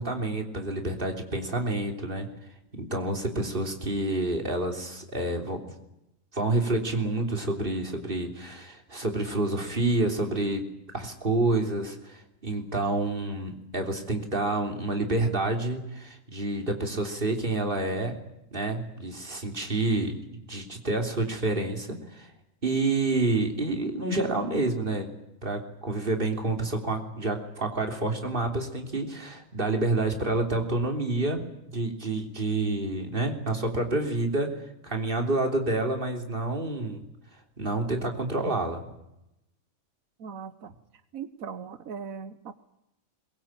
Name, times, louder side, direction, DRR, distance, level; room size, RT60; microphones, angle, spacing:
voice 1, 0.0-2.3 2.7-5.6 6.3-10.6 10.9-18.2 18.5-20.2 20.5-22.3 22.6-25.1 25.4-34.6 34.8-37.0 37.6-38.9, right 2 dB, 40° right, 4 dB, 3.5 m, -28 dB
voice 2, 40.2-40.7 41.1-42.5, right 6 dB, 90° right, 11 dB, 1.5 m, -39 dB
22.5 x 22.0 x 8.9 m, 0.88 s
omnidirectional pair, 1.4 m